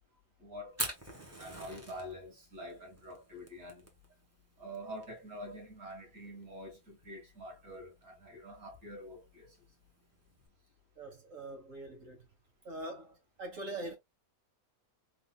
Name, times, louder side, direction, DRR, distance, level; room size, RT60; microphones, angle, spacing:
voice 1, 0.4-0.8 1.4-3.9 4.6-9.5, equal, 80° right, 2.9 m, -46 dB
Fire, 0.7-10.5, right 1 dB, 10° right, 1.1 m, -46 dB
voice 2, 11.0-12.3 12.6-14.0, right 1 dB, 60° right, 1.9 m, -43 dB
4.2 x 3.9 x 2.4 m
omnidirectional pair, 1.5 m